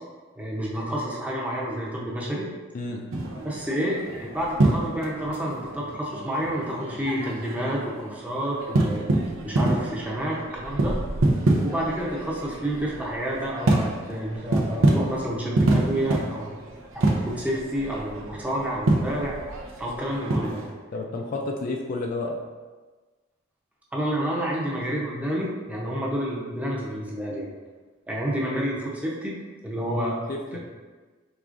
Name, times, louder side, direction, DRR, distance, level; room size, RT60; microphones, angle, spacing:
voice 1, 0.4-2.5 3.4-9.0 9.4-10.9 11.6-16.5 16.9-20.7 23.9-27.5 28.1-29.4 29.6-30.2 30.5-30.6, equal, 5° right, -4 dB, 0.7 m, -29 dB
voice 2, 2.7-3.1 20.9-22.4 30.3-30.6, left 2 dB, 45° left, 1 dB, 0.3 m, -30 dB
sound 1, 3.1-20.7, right 2 dB, 85° right, 0.6 m, -27 dB
4.8 x 3.5 x 2.5 m, 1.3 s
head